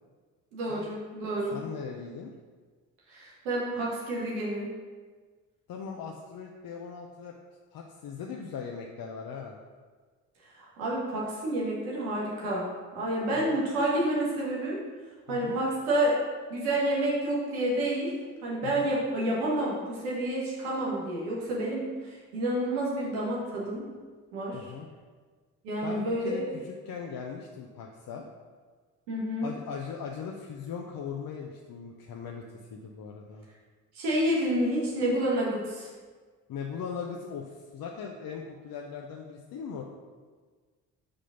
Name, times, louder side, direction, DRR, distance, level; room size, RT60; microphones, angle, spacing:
voice 1, 0.5-1.6 3.1-4.7 10.5-12.7 12.9-14.8 15.3-16.2 16.5-18.1 18.4-23.8 24.3-24.6 25.6-26.5 29.1-29.5 33.9-35.9, right 1 dB, 85° right, -5 dB, 1.5 m, -29 dB
voice 2, 1.5-2.3 5.7-7.3 7.7-9.6 13.3-13.6 15.3-15.6 18.6-18.9 24.5-24.9 25.8-28.2 29.4-32.4 32.7-33.5 36.5-39.8, left 6 dB, 55° left, 0 dB, 0.8 m, -39 dB
5.1 x 3.7 x 5.8 m, 1.5 s
hypercardioid pair, 50°, 43 cm